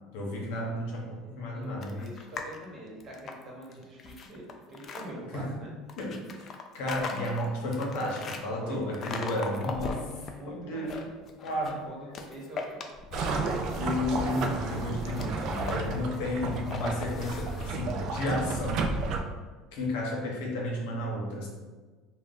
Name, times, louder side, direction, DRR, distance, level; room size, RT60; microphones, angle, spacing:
voice 1, 0.1-2.0 5.3-5.6 6.0-11.1 11.4-11.8 13.8-18.9 19.7-21.5, left 1 dB, 80° left, -1 dB, 0.7 m, -33 dB
voice 2, 1.5-5.7 8.6-8.8 9.1-9.4 10.2-10.9 11.6-12.8, right 1 dB, 40° right, -3 dB, 1.0 m, -44 dB
sound 1, 1.8-2.6 3.0-5.1 5.9-8.4 8.9-10.3 10.7-11.8 12.1-13.4 13.7-17.7, left 4 dB, 40° left, 0.3 m, -39 dB
sound 2, 13.1-19.2, right 3 dB, 60° right, 0.3 m, -32 dB
2.5 x 2.1 x 3.8 m, 1.3 s
supercardioid pair, 110°, 0 cm